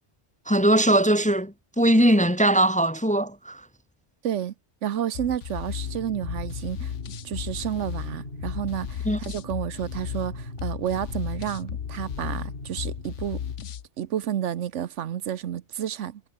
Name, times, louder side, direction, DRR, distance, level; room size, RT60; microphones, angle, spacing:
voice 1, 0.5-3.6 9.0-9.2, right 1 dB, 5° left, 0.9 m, -20 dB
voice 2, 4.2-4.5 4.8-6.9 7.2-13.4 14.0-16.2, right 10 dB, 80° right, 1.1 m, -30 dB
sound 1, 5.1-13.9, left 9 dB, 80° left, 1.2 m, -35 dB
sound 2, 5.7-13.6, left 1 dB, 50° left, 6.6 m, -41 dB
omnidirectional pair, 1.2 m